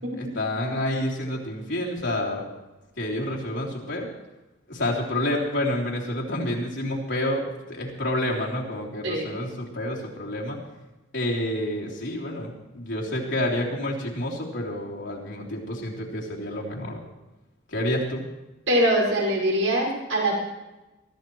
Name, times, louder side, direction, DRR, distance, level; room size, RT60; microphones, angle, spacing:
voice 1, 0.1-2.4 3.0-4.1 4.7-10.6 11.1-17.0 17.7-18.2, left 1 dB, 65° left, -3 dB, 3.4 m, -29 dB
voice 2, 18.7-20.4, right 1 dB, 70° right, -3 dB, 5.4 m, -23 dB
23.5 x 14.5 x 3.1 m, 1.0 s
head